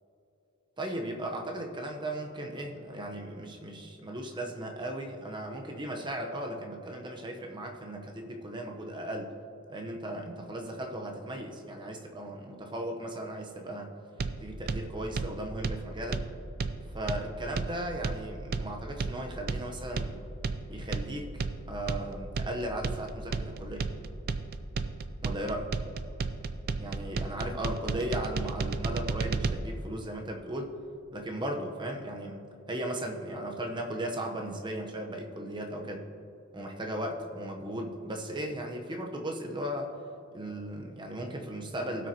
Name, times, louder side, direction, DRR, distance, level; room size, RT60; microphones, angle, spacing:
voice 1, 0.8-9.3 9.7-13.9 14.4-16.2 16.9-20.2 20.7-21.4 21.7-23.9 25.2-25.7 26.8-30.7 31.1-32.4 32.7-36.0 36.5-39.9 40.3-42.1, right 1 dB, 20° right, 2 dB, 0.9 m, -36 dB
sound 1, 14.2-29.5, right 4 dB, 45° right, 0.4 m, -33 dB
17.0 x 6.1 x 2.9 m, 2.7 s
head